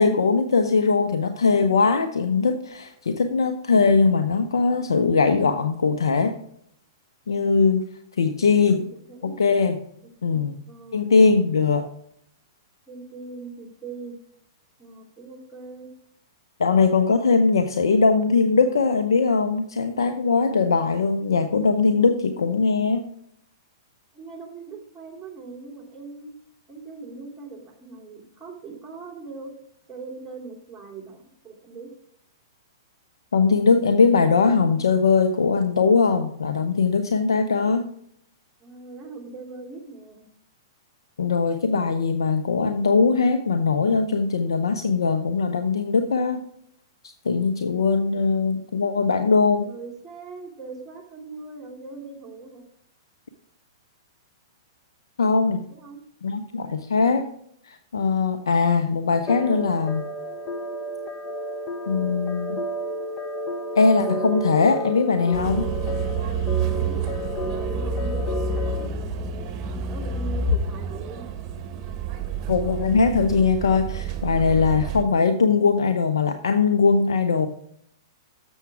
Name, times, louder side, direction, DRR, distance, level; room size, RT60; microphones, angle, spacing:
voice 1, 0.0-6.3 7.3-7.9 8.2-8.9 9.2-9.8 10.2-10.6 10.9-11.9 16.6-23.1 33.3-37.9 41.2-46.4 47.2-49.7 55.2-55.7 56.2-57.3 57.6-60.0 61.9-62.6 63.8-65.7 72.5-77.5, left 4 dB, 85° left, 8 dB, 0.7 m, -20 dB
voice 2, 8.4-9.4 10.0-11.1 12.9-14.2 14.8-15.9 24.1-26.3 26.7-29.5 29.9-31.9 38.6-40.2 49.6-52.6 55.7-56.0 66.8-69.5 69.8-71.3, right 4 dB, 10° right, -1 dB, 2.6 m, -40 dB
sound 1, 59.3-68.9, equal, 30° left, 0.9 m, -31 dB
sound 2, 65.3-75.0, right 5 dB, 35° right, 1.4 m, -29 dB
7.1 x 7.0 x 4.7 m, 0.69 s
hypercardioid pair, 120°, 2 cm